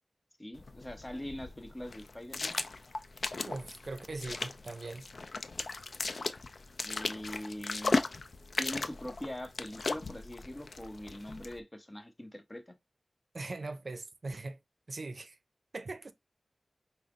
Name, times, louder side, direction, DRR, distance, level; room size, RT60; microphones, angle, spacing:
voice 1, 0.4-2.6 6.8-8.0 8.6-12.7, left 1 dB, 25° left, 1.0 m, -42 dB
sound 1, 0.5-11.6, left 3 dB, 70° left, 0.4 m, -37 dB
voice 2, 3.4-5.1 13.3-14.6 14.9-15.4 15.7-16.1, right 3 dB, 65° right, 0.5 m, -41 dB
5.6 x 2.0 x 3.7 m
wide cardioid pair, 80°, 0 cm